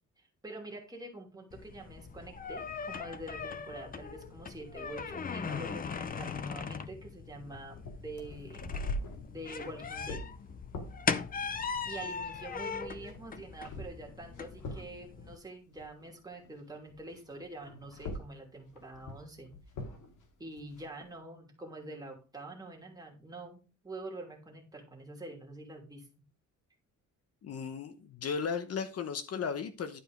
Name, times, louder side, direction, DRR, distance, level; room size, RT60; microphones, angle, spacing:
voice 1, 0.2-8.6 9.3-10.2 11.9-19.5 20.4-26.3, right 2 dB, 10° right, 2.8 m, -46 dB
sound 1, 1.5-15.4, left 5 dB, 30° left, 0.6 m, -39 dB
sound 2, 7.4-16.6 16.9-21.1, left 2 dB, 75° left, 2.7 m, -44 dB
voice 2, 27.4-30.0, left 6 dB, 50° left, 1.0 m, -35 dB
11.5 x 4.9 x 5.2 m
wide cardioid pair, 170°, 31 cm